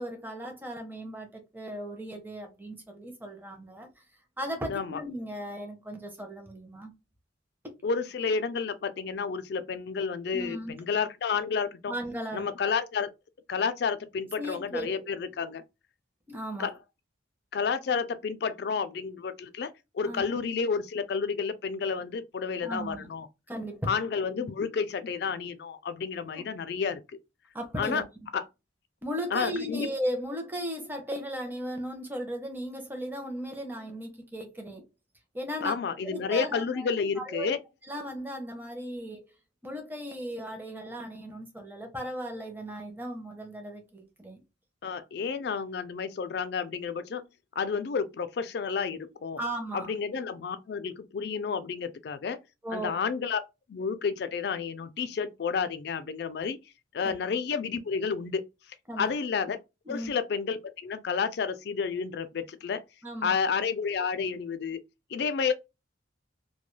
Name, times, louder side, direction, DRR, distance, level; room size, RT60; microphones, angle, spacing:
voice 1, 0.0-3.9 4.4-6.9 10.3-10.8 11.9-12.4 14.4-15.1 16.3-16.7 20.0-20.4 22.6-23.1 23.5-24.0 24.4-24.5 26.3-26.4 27.5-28.0 29.0-34.9 35.3-35.7 36.0-36.9 37.2-37.5 37.9-39.2 39.6-44.4 49.4-49.9 52.6-52.9 57.0-57.2 58.9-59.1 59.9-60.1 63.0-63.3, equal, 10° right, 0.5 m, -36 dB
voice 2, 4.7-5.0 7.8-11.9 12.3-13.1 13.5-15.6 16.6-16.7 17.5-19.7 19.9-23.3 23.9-27.0 27.8-28.0 28.3-28.5 29.3-29.9 35.6-37.6 44.8-47.2 47.6-49.4 49.7-52.4 52.7-53.4 53.7-56.6 56.9-58.5 59.0-59.6 59.9-62.8 63.2-64.8 65.1-65.5, left 5 dB, 55° left, 0.3 m, -30 dB
2.2 x 2.2 x 3.1 m
head